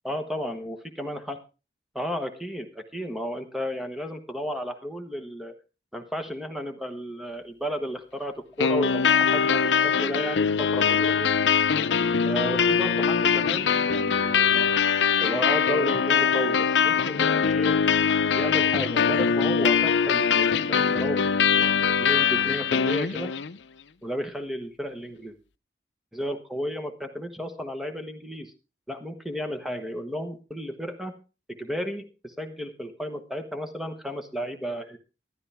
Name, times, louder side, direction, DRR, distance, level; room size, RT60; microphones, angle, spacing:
voice 1, 0.0-1.4 1.9-5.5 5.9-11.3 12.3-14.7 15.2-17.7 18.4-21.2 21.5-23.3 24.0-25.3 26.1-28.5 28.9-31.1 31.5-35.0, equal, ahead, 6 dB, 1.2 m, -33 dB
sound 1, 8.6-23.6, left 6 dB, 90° left, 0.6 m, -22 dB
13.0 x 11.5 x 3.5 m, 0.32 s
head